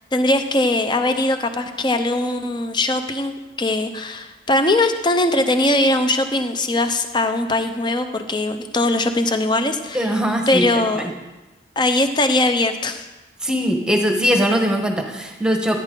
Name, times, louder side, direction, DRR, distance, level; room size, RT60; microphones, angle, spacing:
voice 1, 0.1-10.1 10.5-11.1 11.8-13.1, left 2 dB, 25° left, 8 dB, 0.7 m, -20 dB
voice 2, 9.9-10.6 10.9-11.1 13.4-15.8, equal, 5° right, 3 dB, 1.1 m, -20 dB
14.0 x 9.9 x 3.8 m, 1.1 s
head